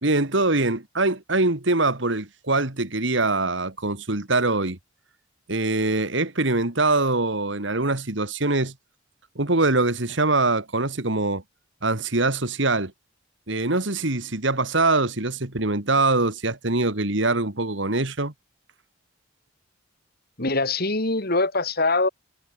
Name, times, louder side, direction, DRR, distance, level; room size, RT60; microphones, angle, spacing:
voice 1, 0.0-4.8 5.5-8.7 9.4-11.4 11.8-12.9 13.5-18.3, right 2 dB, 65° right, 2.3 m, -23 dB
voice 2, 20.4-22.1, left 3 dB, 50° left, 3.1 m, -23 dB
head